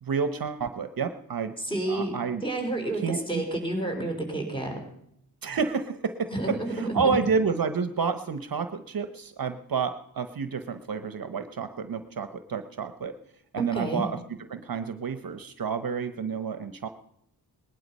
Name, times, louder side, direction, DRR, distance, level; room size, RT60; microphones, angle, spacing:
voice 1, 0.0-1.5 1.9-2.4 3.0-3.4 5.4-13.1 13.5-14.2 14.5-16.9, right 5 dB, 55° right, 10 dB, 1.0 m, -30 dB
voice 2, 1.6-2.1 2.4-4.8 6.3-7.2 13.6-14.0, right 1 dB, 10° left, 2 dB, 4.2 m, -30 dB
19.5 x 11.5 x 5.4 m, 0.75 s
wide cardioid pair, 105°, 41 cm